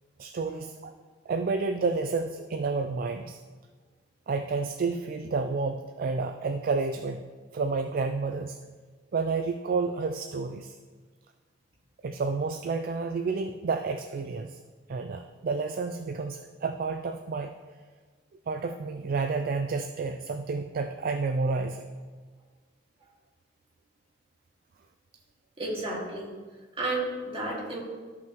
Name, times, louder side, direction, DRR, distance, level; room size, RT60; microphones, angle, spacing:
voice 1, 0.2-0.9 1.3-3.4 4.3-7.3 7.5-8.6 9.1-10.8 12.0-14.6 14.9-17.5 18.5-21.8, right 4 dB, 50° right, 7 dB, 0.4 m, -30 dB
voice 2, 25.6-26.3 26.8-27.8, right 2 dB, 30° right, -5 dB, 2.1 m, -32 dB
13.5 x 5.7 x 3.0 m, 1.4 s
head